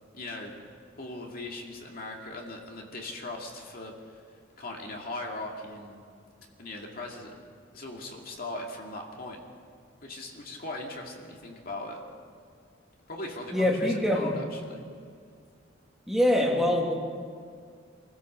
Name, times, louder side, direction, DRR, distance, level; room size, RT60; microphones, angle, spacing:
voice 1, 0.1-0.5 1.0-4.2 4.6-6.0 6.6-7.4 7.7-9.4 10.0-12.0 13.1-14.8, left 2 dB, 50° left, 0 dB, 2.4 m, -39 dB
voice 2, 13.5-14.3 16.1-16.9, left 1 dB, ahead, -1 dB, 2.5 m, -24 dB
24.5 x 15.5 x 6.8 m, 2.1 s
head